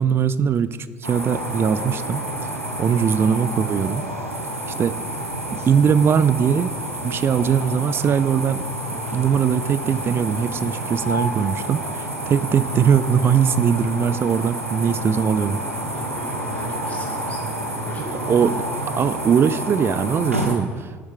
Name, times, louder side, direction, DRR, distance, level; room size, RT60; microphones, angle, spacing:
voice 1, 0.0-2.2 2.8-4.1 4.8-5.0 5.7-6.7 7.0-8.7 9.1-15.6 18.3-18.6 19.0-20.9, right 7 dB, 35° right, 15 dB, 0.4 m, -20 dB
sound 1, 1.0-20.6, right 1 dB, 90° right, 0.9 m, -29 dB
voice 2, 15.9-18.6, left 2 dB, 20° left, -2 dB, 2.6 m, -39 dB
11.0 x 7.4 x 3.5 m, 1.5 s
figure-of-eight pair, 55°, 7 cm